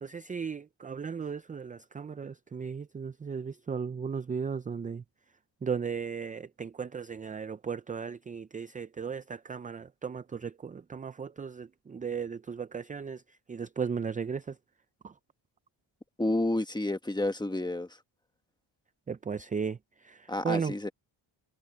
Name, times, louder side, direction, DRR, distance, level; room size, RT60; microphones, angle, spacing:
voice 1, 0.0-5.0 5.6-13.2 13.5-14.6 15.0-15.1 19.1-20.7, right 6 dB, 20° right, 0.4 m, -36 dB
voice 2, 16.2-17.9 20.3-20.9, left 1 dB, 10° left, 1.3 m, -30 dB
cardioid pair, 110°, 49 cm